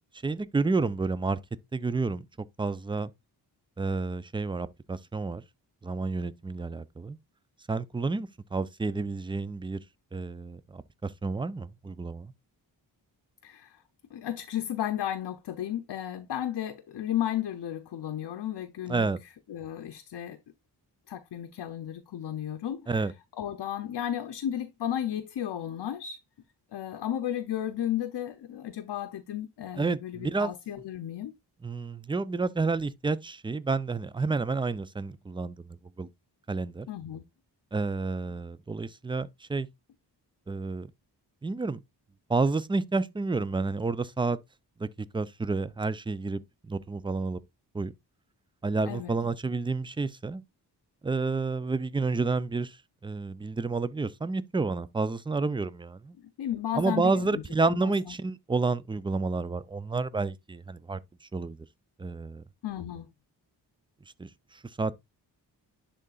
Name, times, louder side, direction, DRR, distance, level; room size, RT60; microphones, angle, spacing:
voice 1, 0.2-1.4 1.7-2.3 2.6-3.1 3.8-5.4 5.8-7.2 7.7-9.8 10.1-12.3 18.9-19.2 22.9-23.1 29.8-30.5 31.6-36.1 36.5-36.9 37.7-39.7 40.5-40.9 41.4-41.8 42.3-44.4 44.8-47.4 47.7-47.9 48.6-50.4 51.0-52.8 53.0-56.2 56.7-61.6 62.0-62.4 64.2-64.9, right 3 dB, 10° right, 0.4 m, -30 dB
voice 2, 13.4-13.8 14.1-19.1 19.5-20.4 21.1-22.9 23.4-26.2 26.7-31.3 36.9-37.2 48.8-49.1 56.2-57.9 62.6-63.1, left 11 dB, 65° left, 0.7 m, -34 dB
10.5 x 3.8 x 2.4 m
cardioid pair, 75°, 42 cm